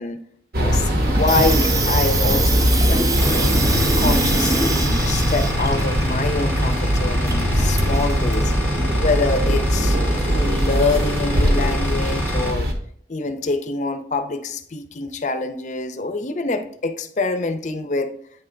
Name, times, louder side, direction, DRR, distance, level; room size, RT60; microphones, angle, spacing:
sound 1, 0.5-12.7, equal, 55° right, 0.9 m, -21 dB
voice 1, 0.6-3.5 4.0-8.5 9.0-12.7 13.1-18.1, left 3 dB, 40° left, 0.5 m, -25 dB
Water tap faucet / Sink (filling or washing), 1.0-8.6, right 3 dB, 20° right, 0.4 m, -25 dB
sound 2, 3.2-12.5, left 1 dB, 10° left, 0.8 m, -27 dB
8.6 x 3.3 x 3.8 m
head